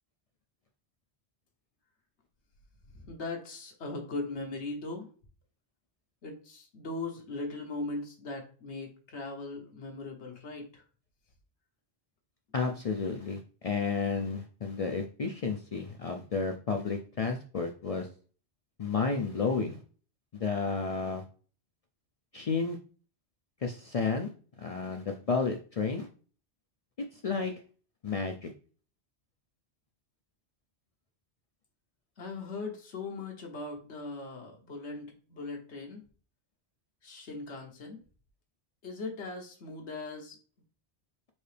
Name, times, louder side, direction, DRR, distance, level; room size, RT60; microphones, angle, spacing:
voice 1, 2.9-5.1 6.2-10.8 32.2-36.0 37.0-38.0 38.8-40.4, left 3 dB, 85° left, 1 dB, 1.2 m, -39 dB
voice 2, 12.5-18.1 18.8-19.8 20.3-21.2 22.3-22.8 23.6-24.3 24.6-26.1 27.2-27.5 28.0-28.5, left 4 dB, 55° left, 4 dB, 0.4 m, -31 dB
4.4 x 2.7 x 3.3 m, 0.39 s
omnidirectional pair, 1.1 m